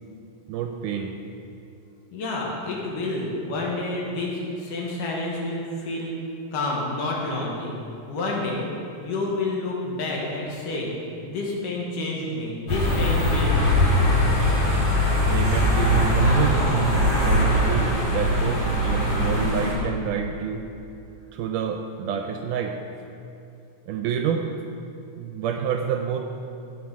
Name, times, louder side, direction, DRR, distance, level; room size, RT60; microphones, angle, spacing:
voice 1, 0.5-1.1 15.3-16.6 17.2-20.6 21.3-22.8 23.9-24.5 25.2-26.2, right 7 dB, 80° right, 4 dB, 2.0 m, -28 dB
voice 2, 2.1-6.1 6.5-7.8 8.1-8.7 9.0-10.9 11.2-13.8, left 2 dB, 70° left, -3 dB, 3.0 m, -29 dB
sound 1, 12.7-19.7, equal, 45° left, 3.3 m, -21 dB
16.5 x 5.9 x 4.7 m, 2.7 s
omnidirectional pair, 4.0 m